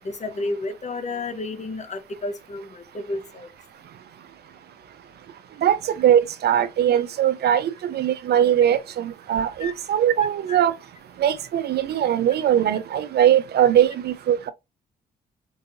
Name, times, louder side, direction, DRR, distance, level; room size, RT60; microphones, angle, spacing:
voice 1, 0.0-3.5 9.6-9.7 10.5-10.6, left 2 dB, 40° left, 0.9 m, -31 dB
voice 2, 5.6-10.7 11.2-14.5, right 10 dB, 60° right, 0.5 m, -20 dB
4.6 x 2.6 x 2.6 m
supercardioid pair, 55°, 18 cm